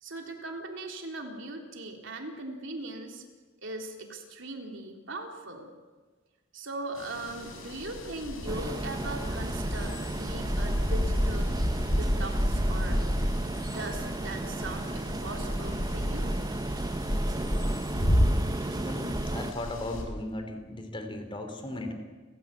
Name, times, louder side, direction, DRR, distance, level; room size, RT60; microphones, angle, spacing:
voice 1, 0.0-3.2 3.6-5.7 6.5-11.5 11.9-13.0 13.7-16.3, right 2 dB, 65° right, 2 dB, 3.6 m, -39 dB
sound 1, 7.0-20.0, equal, 90° left, 5.2 m, -30 dB
sound 2, 8.5-19.5, right 2 dB, 20° right, 0.6 m, -35 dB
voice 2, 18.8-21.9, left 1 dB, 25° left, 5 dB, 3.1 m, -37 dB
30.0 x 15.5 x 8.5 m, 1.4 s
head